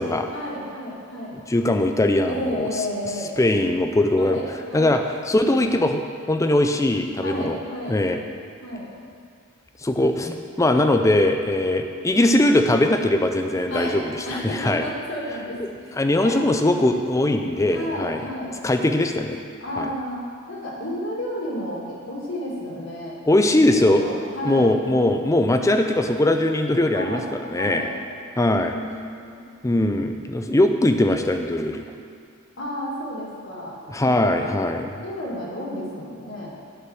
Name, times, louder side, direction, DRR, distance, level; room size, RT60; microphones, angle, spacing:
voice 1, 0.3-1.4 2.3-3.3 4.2-4.9 7.2-8.0 8.6-8.9 13.7-14.0 14.3-15.9 16.2-16.4 17.7-18.6 19.6-24.7 26.9-28.0 28.7-29.5 32.6-33.8 34.0-34.6 35.0-36.5, left 1 dB, 60° left, -4 dB, 2.0 m, -32 dB
voice 2, 1.5-2.7 3.4-4.4 4.7-5.0 5.3-6.0 6.3-7.6 7.9-8.2 9.8-14.8 16.0-18.2 18.6-19.4 19.8-19.9 23.3-24.1 24.4-27.8 28.4-28.7 29.6-31.8 33.9-35.0, left 1 dB, 15° left, 6 dB, 0.4 m, -20 dB
9.9 x 4.8 x 6.2 m, 2.2 s
head